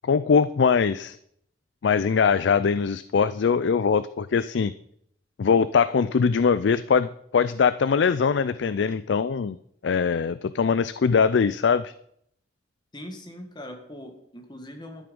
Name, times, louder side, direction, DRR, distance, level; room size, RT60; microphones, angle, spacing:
voice 1, 0.0-1.2 1.8-4.7 5.4-9.6 9.8-11.9, left 6 dB, 90° left, 15 dB, 0.4 m, -22 dB
voice 2, 12.9-15.1, left 1 dB, 25° left, 4 dB, 1.8 m, -41 dB
12.5 x 10.0 x 5.3 m, 0.70 s
head